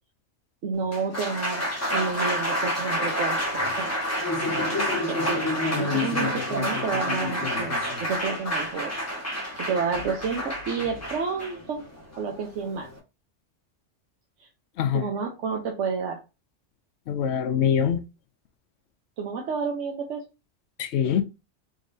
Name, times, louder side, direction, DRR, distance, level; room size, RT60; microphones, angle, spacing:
voice 1, 0.6-1.6 1.9-3.9 5.1-8.9 9.6-11.8 12.2-12.9 14.4-14.5 14.9-16.2 19.2-20.2, right 5 dB, 85° right, 1.1 m, -30 dB
Applause, 0.7-13.0, left 1 dB, 15° left, 1.1 m, -28 dB
voice 2, 14.8-15.1 17.1-18.0 20.8-21.2, left 8 dB, 70° left, 0.9 m, -24 dB
3.8 x 3.6 x 2.6 m
omnidirectional pair, 1.2 m